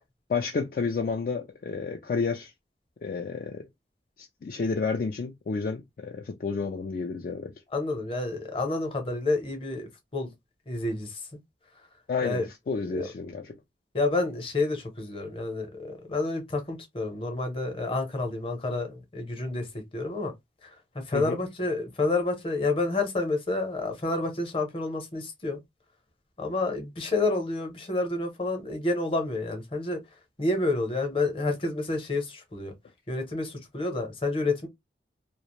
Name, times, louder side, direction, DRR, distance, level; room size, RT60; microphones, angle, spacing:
voice 1, 0.3-2.5 3.0-3.7 4.2-7.5 12.1-13.6 21.1-21.4, left 4 dB, 50° left, 0.3 m, -31 dB
voice 2, 7.7-10.3 10.7-11.2 12.2-12.5 12.9-13.0 13.9-19.7 19.9-20.3 20.6-20.8 21.1-25.6 26.4-30.0 30.4-32.7 33.1-34.7, left 2 dB, 30° left, 0.7 m, -29 dB
2.4 x 2.0 x 2.9 m
head